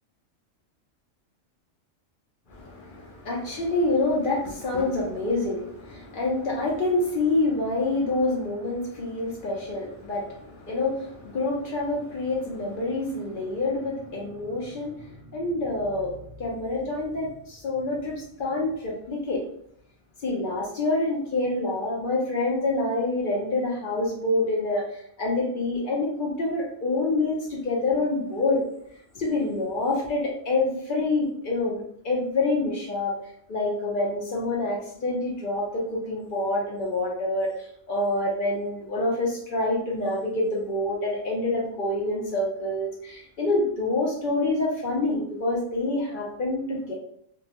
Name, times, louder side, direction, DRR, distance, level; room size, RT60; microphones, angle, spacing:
voice 1, 2.5-19.4 20.2-28.6 29.1-33.1 33.5-46.9, left 2 dB, 55° left, -3 dB, 0.6 m, -27 dB
2.6 x 2.0 x 2.9 m, 0.67 s
omnidirectional pair, 1.4 m